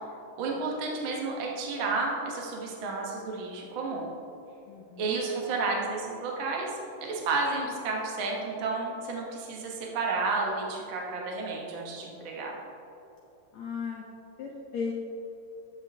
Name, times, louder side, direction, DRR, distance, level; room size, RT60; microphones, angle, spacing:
voice 1, 0.4-4.1 5.0-6.7 7.0-12.5, right 3 dB, 75° right, -1 dB, 1.1 m, -31 dB
voice 2, 4.7-5.2 13.5-14.0 14.4-14.9, left 5 dB, 70° left, -3 dB, 1.8 m, -36 dB
10.5 x 8.6 x 2.8 m, 3.0 s
omnidirectional pair, 3.9 m